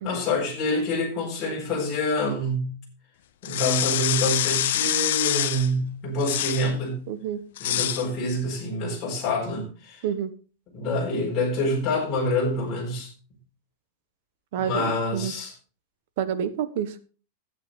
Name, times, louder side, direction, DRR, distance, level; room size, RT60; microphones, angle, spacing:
voice 1, 0.0-2.8 3.4-7.1 7.6-10.1 10.7-13.1 14.6-15.5, left 1 dB, 25° left, -3 dB, 4.2 m, -26 dB
sound 1, 3.4-5.7 6.2-6.7 7.6-8.1, left 12 dB, 65° left, 0.8 m, -25 dB
voice 2, 7.1-7.4 10.0-10.3 14.5-15.3 16.2-17.0, right 9 dB, 55° right, 12 dB, 1.1 m, -28 dB
14.0 x 8.5 x 3.7 m, 0.36 s
supercardioid pair, 170°, 0 cm